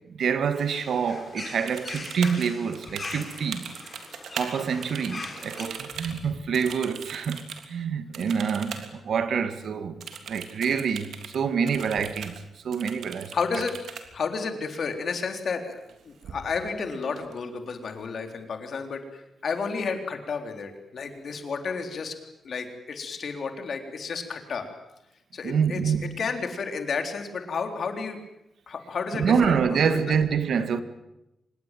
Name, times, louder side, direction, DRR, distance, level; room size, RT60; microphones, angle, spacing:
voice 1, 0.1-3.7 4.3-7.4 7.7-10.0 10.3-13.3 25.4-26.2 29.1-30.8, right 6 dB, 65° right, 1.9 m, -26 dB
sound 1, 0.5-5.6, left 3 dB, 25° left, 4.6 m, -41 dB
sound 2, 1.7-4.5 4.8-7.7 8.1-8.9 9.2-9.3 10.0-11.4 11.7-12.4 12.7-14.0 15.7-15.9 16.2-16.7 17.0-17.7, right 7 dB, 85° right, 3.2 m, -40 dB
voice 2, 13.3-13.8 14.1-15.8 16.1-22.2 22.4-24.7 25.3-28.2 28.7-30.2, left 5 dB, 50° left, 3.6 m, -32 dB
25.5 x 20.5 x 9.1 m
wide cardioid pair, 160°, 0 cm